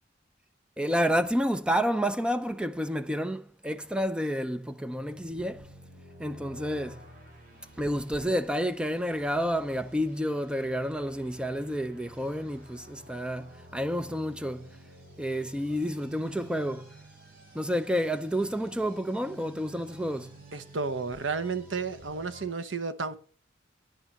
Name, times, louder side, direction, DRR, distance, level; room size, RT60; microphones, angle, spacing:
voice 1, 0.8-5.7 6.2-7.0 7.8-14.7 15.2-16.9 17.5-20.3, equal, 5° right, 0.6 m, -30 dB
sound 1, 4.6-22.5, right 1 dB, 50° right, 3.5 m, -51 dB
voice 2, 20.5-23.2, right 4 dB, 85° right, 0.9 m, -32 dB
10.5 x 6.0 x 6.6 m
head